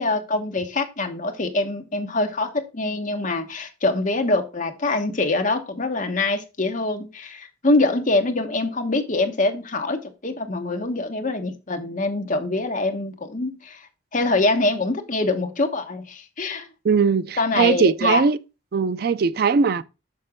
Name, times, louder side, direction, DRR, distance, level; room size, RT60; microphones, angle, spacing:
voice 1, 0.0-13.9 14.1-16.7 17.4-18.2, left 2 dB, 45° left, 1.2 m, -24 dB
voice 2, 16.8-18.4 18.7-19.8, right 5 dB, 55° right, 0.4 m, -20 dB
6.5 x 6.0 x 3.6 m
head